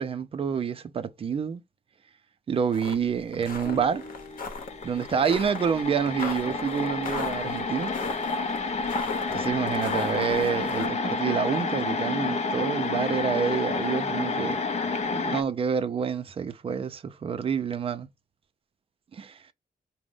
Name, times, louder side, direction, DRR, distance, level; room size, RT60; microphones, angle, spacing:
voice 1, 0.0-1.6 2.5-4.0 4.8-7.9 9.3-14.6 15.1-18.1 19.1-19.4, right 7 dB, 40° right, 0.4 m, -28 dB
sound 1, 2.7-3.0 3.3-10.9, left 4 dB, 70° left, 0.8 m, -37 dB
sound 2, 3.6-14.3 14.5-14.6, left 1 dB, 30° left, 1.3 m, -46 dB
sound 3, 4.1-4.2 4.4-15.4, left 4 dB, 50° left, 0.5 m, -30 dB
4.9 x 2.0 x 3.5 m
wide cardioid pair, 170°, 15 cm